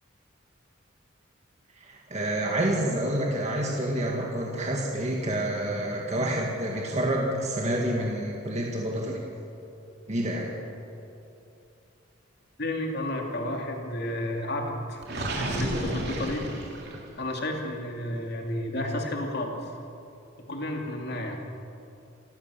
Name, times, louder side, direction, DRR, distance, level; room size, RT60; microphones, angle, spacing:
voice 1, 1.8-9.2 10.1-10.5, right 1 dB, 35° right, -1 dB, 2.1 m, -28 dB
voice 2, 12.6-16.4 17.2-19.7 20.4-21.4, left 1 dB, 55° left, 1 dB, 2.7 m, -32 dB
Gurgling, 15.0-17.2, right 1 dB, 55° right, 3.4 m, -31 dB
27.5 x 15.0 x 7.1 m, 2.7 s
head